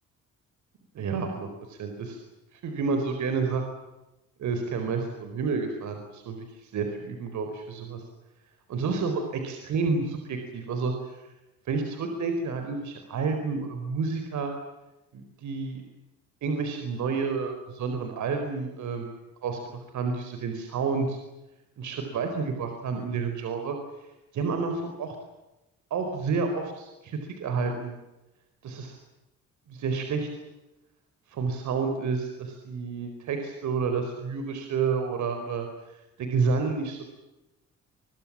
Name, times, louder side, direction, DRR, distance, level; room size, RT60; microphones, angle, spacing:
voice 1, 0.9-2.2 2.5-3.6 4.4-8.0 8.7-11.2 11.7-14.5 15.1-15.8 16.4-21.2 21.8-23.8 24.3-25.2 25.9-28.0 28.6-29.0 29.7-30.3 31.3-35.7 36.2-37.1, right 4 dB, 70° right, 5 dB, 4.6 m, -30 dB
28.0 x 23.0 x 7.5 m, 1.0 s
cardioid pair, 90°, 30 cm